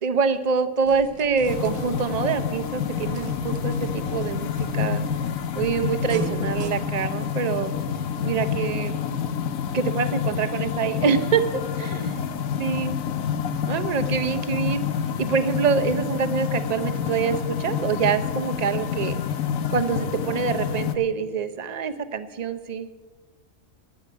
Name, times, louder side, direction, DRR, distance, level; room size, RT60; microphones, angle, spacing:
voice 1, 0.0-5.0 5.5-7.7 8.2-9.0 9.7-11.4 11.8-12.3 12.6-12.9 13.6-14.8 15.2-19.2 19.7-22.9, right 6 dB, 40° right, 9 dB, 0.7 m, -25 dB
sound 1, 0.9-6.7, right 6 dB, 80° right, 1.4 m, -39 dB
sound 2, 1.5-21.0, left 7 dB, 85° left, 1.2 m, -28 dB
10.0 x 10.0 x 8.5 m, 1.3 s
omnidirectional pair, 1.4 m